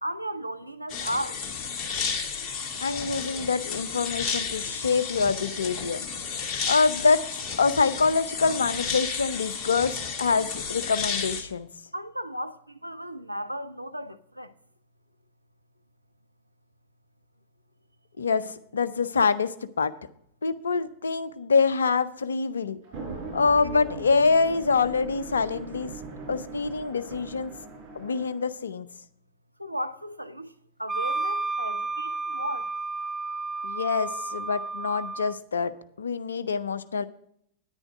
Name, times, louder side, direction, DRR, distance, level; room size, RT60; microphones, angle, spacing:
voice 1, 0.0-1.4 11.9-14.5 29.6-30.5 30.8-32.7, right 1 dB, 90° right, 0.6 m, -35 dB
sound 1, 0.9-11.4, left 5 dB, 35° left, 2.0 m, -32 dB
voice 2, 2.8-6.0 6.7-7.2 7.6-11.7 18.2-19.9 20.4-22.8 23.3-25.9 26.3-27.5 27.9-28.9 33.6-35.7 36.0-37.0, left 4 dB, 70° left, 0.6 m, -25 dB
sound 2, 22.8-28.5, right 3 dB, 40° right, 5.2 m, -39 dB
Wind instrument woodwind instrument, 30.9-35.4, right 3 dB, 5° right, 0.5 m, -32 dB
10.0 x 9.8 x 4.7 m
figure-of-eight pair, 90°, 0 cm